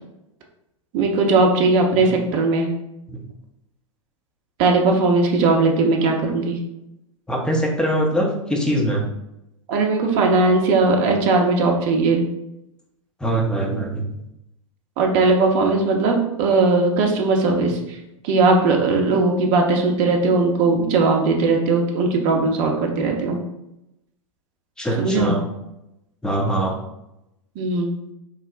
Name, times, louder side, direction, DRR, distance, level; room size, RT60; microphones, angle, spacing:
voice 1, 0.9-2.7 4.6-6.6 9.7-12.2 13.7-13.8 15.0-18.0 18.2-23.4 25.0-25.4 27.6-27.9, right 3 dB, 40° right, 2 dB, 0.7 m, -18 dB
voice 2, 7.3-9.0 13.2-14.1 24.8-25.4 26.2-26.7, right 1 dB, 5° left, -1 dB, 0.6 m, -22 dB
3.1 x 2.0 x 3.7 m, 0.87 s
figure-of-eight pair, 95°, 17 cm